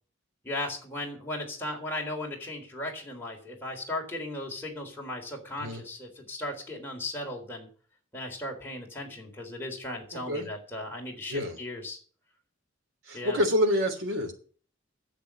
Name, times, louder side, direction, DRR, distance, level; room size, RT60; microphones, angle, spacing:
voice 1, 0.4-7.7 8.1-12.0 13.1-13.4, left 1 dB, 10° left, -1 dB, 3.7 m, -36 dB
voice 2, 13.1-14.3, equal, 80° right, 4 dB, 3.2 m, -27 dB
10.5 x 7.7 x 8.8 m, 0.43 s
head